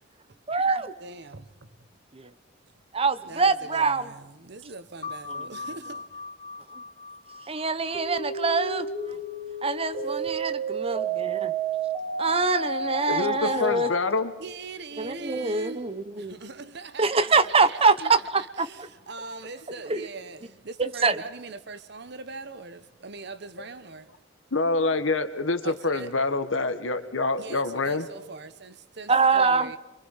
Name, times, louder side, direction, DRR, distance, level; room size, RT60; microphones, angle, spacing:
voice 1, 0.5-0.9 2.2-2.3 2.9-4.1 5.3-5.5 7.5-8.9 9.6-11.5 12.2-13.9 15.0-16.3 17.0-18.9 19.9-20.0 20.8-21.2 29.1-29.7, right 4 dB, 30° right, 0.9 m, -24 dB
voice 2, 1.0-1.5 3.2-6.0 10.0-10.3 12.2-12.3 13.4-13.6 14.4-15.9 16.2-17.8 18.6-24.1 25.6-26.1 27.4-29.8, right 3 dB, 60° right, 1.1 m, -41 dB
sound 1, 5.0-10.2, left 4 dB, 30° left, 2.3 m, -41 dB
sound 2, 7.9-14.0, right 3 dB, ahead, 6.0 m, -31 dB
voice 3, 13.1-14.3 24.5-28.1, left 3 dB, 85° left, 1.7 m, -26 dB
27.5 x 23.5 x 5.7 m
head